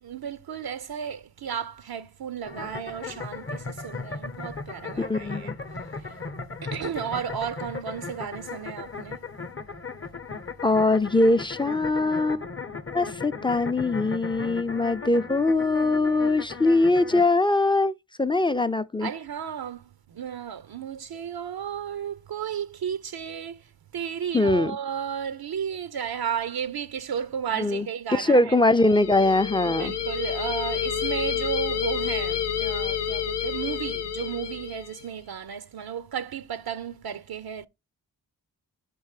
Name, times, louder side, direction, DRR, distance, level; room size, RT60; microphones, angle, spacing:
voice 1, 0.0-5.5 6.0-6.2 6.6-9.3 19.0-28.6 29.6-37.7, right 8 dB, 65° right, 0.6 m, -33 dB
sound 1, 2.4-17.2, left 4 dB, 35° left, 0.8 m, -37 dB
voice 2, 5.0-5.5 10.6-12.4 12.9-17.9 18.2-19.1 24.3-24.7 27.6-27.9 28.2-29.9, left 2 dB, 10° left, 0.5 m, -22 dB
sound 2, 28.7-35.1, left 9 dB, 85° left, 0.7 m, -29 dB
5.1 x 4.6 x 4.8 m
cardioid pair, 40°, 40 cm